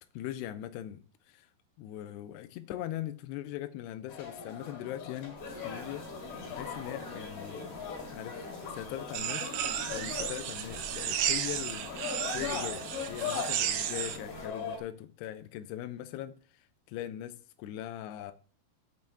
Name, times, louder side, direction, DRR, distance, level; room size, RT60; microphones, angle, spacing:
voice 1, 0.1-1.5 1.8-5.4 5.6-6.1 6.5-8.5 8.7-9.5 9.9-11.9 12.3-18.3, left 12 dB, 85° left, 2.3 m, -40 dB
sound 1, 4.1-14.8, left 6 dB, 60° left, 3.9 m, -40 dB
sound 2, 5.3-14.5, equal, 5° left, 2.6 m, -47 dB
sound 3, 9.1-14.2, right 10 dB, 75° right, 2.5 m, -33 dB
7.8 x 5.3 x 7.0 m
omnidirectional pair, 5.6 m